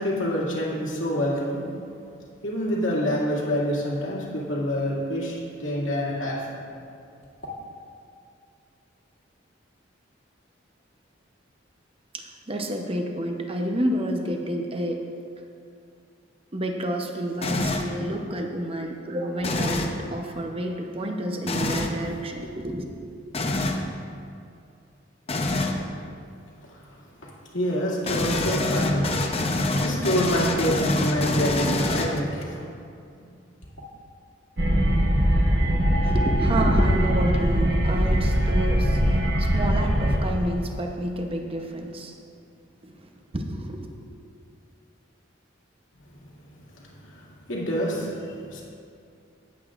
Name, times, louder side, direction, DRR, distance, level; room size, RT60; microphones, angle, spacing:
voice 1, 0.0-1.7 2.4-6.6 26.6-27.0 27.2-29.2 29.8-32.6 33.2-33.3 46.5-48.6, equal, 85° left, -5 dB, 2.3 m, -27 dB
voice 2, 12.1-15.0 16.5-22.9 36.0-42.1 42.8-42.9 43.3-43.9, right 1 dB, 30° right, 3 dB, 0.8 m, -29 dB
sound 1, 17.4-18.0 19.4-20.0 21.5-21.9 23.3-23.8 25.3-25.8 28.0-32.4, left 2 dB, 30° left, 0.7 m, -26 dB
sound 2, 34.6-40.2, equal, 60° right, 1.2 m, -21 dB
17.5 x 8.0 x 2.5 m, 2.4 s
head